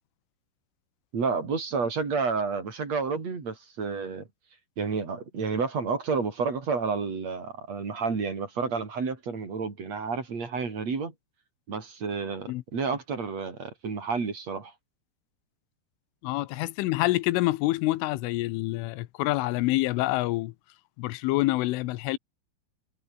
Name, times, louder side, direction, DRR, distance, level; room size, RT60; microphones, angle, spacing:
voice 1, 1.1-4.3 4.8-11.1 11.7-14.7, right 5 dB, 35° right, 5.0 m, -30 dB
voice 2, 16.2-20.5 21.0-22.2, left 19 dB, 80° left, 3.3 m, -27 dB
omnidirectional pair, 5.8 m